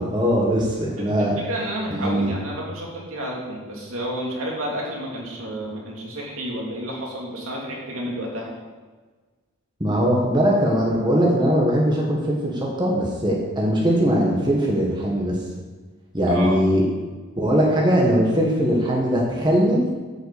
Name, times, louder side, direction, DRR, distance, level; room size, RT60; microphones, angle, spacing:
voice 1, 0.0-1.4 1.9-2.3 9.8-15.4 16.1-16.8 17.4-19.8, equal, 20° right, -3 dB, 1.5 m, -20 dB
voice 2, 1.0-8.5 16.3-16.6, equal, 70° right, -3 dB, 2.5 m, -30 dB
8.9 x 5.7 x 6.9 m, 1.4 s
head